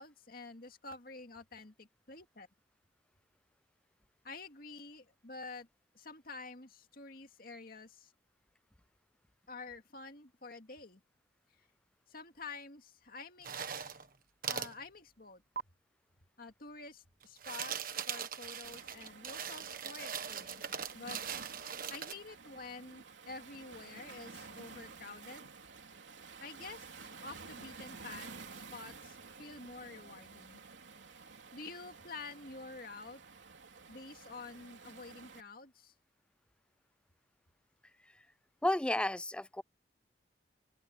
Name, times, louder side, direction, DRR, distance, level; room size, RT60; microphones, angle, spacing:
voice 1, 0.0-2.5 4.2-5.7 5.9-8.1 9.5-11.0 11.6-11.7 12.1-13.9 14.5-15.4 16.4-21.2 21.9-25.5 26.4-28.3 28.6-30.6 31.5-33.2 33.9-35.9, left 3 dB, 55° left, 2.3 m, -49 dB
sound 1, 13.4-14.1 14.4-14.7 15.6-15.7 17.2-22.1, right 8 dB, 50° right, 1.4 m, -40 dB
Waves surf, 18.6-35.4, right 4 dB, 85° right, 3.2 m, -52 dB
voice 2, 38.6-39.6, left 1 dB, 5° left, 0.3 m, -32 dB
open air
head